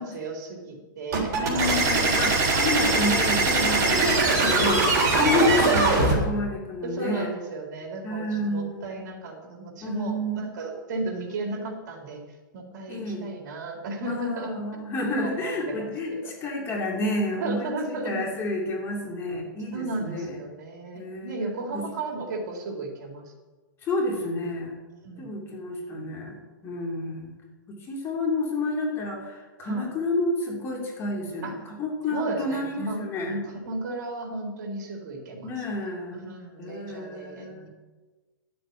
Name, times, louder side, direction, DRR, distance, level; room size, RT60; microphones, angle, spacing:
voice 1, 0.0-2.3 3.6-4.5 5.3-5.5 6.8-12.2 12.5-14.6 15.0-16.2 17.4-18.2 19.7-23.2 25.0-25.4 29.7-29.9 31.4-31.5 32.1-33.0 33.3-35.5 36.1-37.7, right 2 dB, 55° right, 1 dB, 3.7 m, -34 dB
sound 1, 1.1-6.2, right 3 dB, 30° right, 3.8 m, -22 dB
voice 2, 1.4-4.8 5.1-7.3 8.0-9.0 9.8-10.5 11.5-11.7 12.9-13.3 14.0-20.4 20.9-21.4 21.7-21.8 23.8-24.8 25.2-27.3 27.7-33.4 35.4-36.2 36.6-37.7, left 2 dB, 20° left, -1 dB, 2.9 m, -30 dB
12.0 x 7.8 x 9.1 m, 1.3 s
hypercardioid pair, 155°, 11 cm